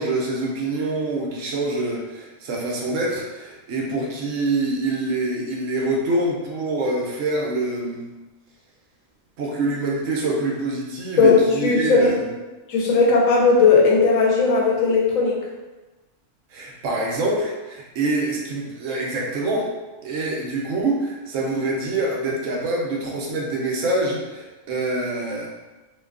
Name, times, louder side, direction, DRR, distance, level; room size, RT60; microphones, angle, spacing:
voice 1, 0.0-8.0 9.4-12.3 16.5-19.7 20.0-25.5, right 2 dB, 75° right, -2 dB, 0.9 m, -25 dB
voice 2, 11.2-12.1 12.7-15.4, left 4 dB, 90° left, -1 dB, 1.0 m, -17 dB
2.7 x 2.2 x 2.3 m, 1.2 s
omnidirectional pair, 1.3 m